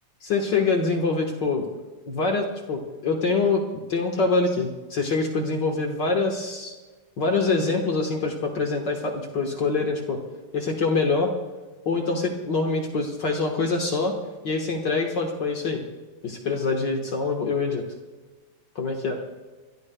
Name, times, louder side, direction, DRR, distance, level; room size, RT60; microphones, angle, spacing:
voice 1, 0.2-1.6 2.1-3.6 3.9-6.7 7.2-10.2 10.5-11.3 11.8-14.1 14.4-15.8 16.2-17.8 18.7-19.2, left 3 dB, 55° left, 1 dB, 1.2 m, -25 dB
28.5 x 13.0 x 2.3 m, 1.3 s
omnidirectional pair, 4.0 m